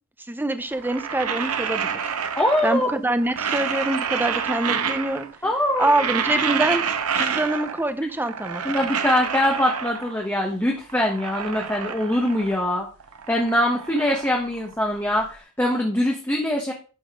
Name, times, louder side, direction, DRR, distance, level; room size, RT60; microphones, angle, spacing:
voice 1, 0.3-2.0 2.6-5.3 5.8-6.9 7.2-8.6, right 1 dB, 10° right, 0.6 m, -25 dB
sound 1, 0.7-2.9 3.2-5.4 5.7-7.9 8.2-10.3 10.7-12.7 13.0-15.2, right 7 dB, 85° right, 0.9 m, -28 dB
voice 2, 2.3-2.9 5.4-5.9 8.6-12.9 13.3-16.7, left 1 dB, 10° left, 1.3 m, -23 dB
11.5 x 4.2 x 5.0 m
head